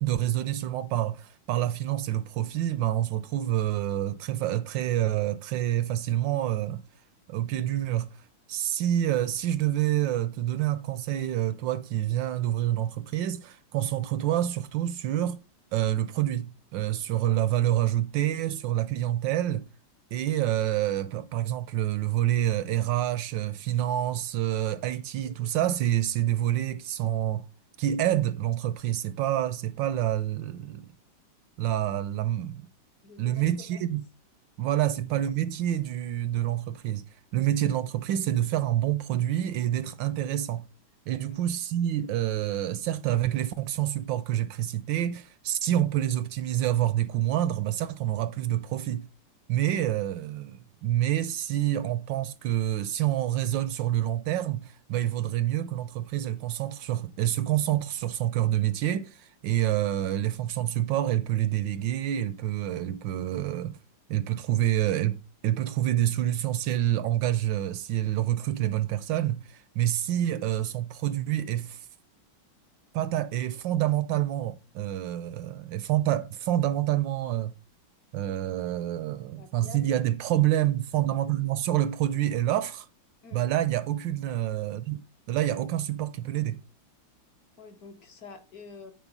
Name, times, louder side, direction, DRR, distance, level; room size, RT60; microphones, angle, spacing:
voice 1, 0.0-6.8 7.3-8.2 8.5-15.4 15.7-19.7 20.1-27.5 27.8-30.9 31.6-32.7 33.2-34.0 34.6-37.0 37.3-40.7 41.1-49.1 49.5-63.8 64.1-71.9 72.9-77.5 78.1-82.9 83.3-85.0 85.3-86.6, right 12 dB, 75° right, 1.2 m, -27 dB
voice 2, 33.0-33.8 34.8-35.0 41.2-41.4 79.4-80.0 83.2-83.4 87.6-88.9, left 4 dB, 55° left, 1.4 m, -48 dB
10.0 x 4.4 x 5.3 m
omnidirectional pair, 2.2 m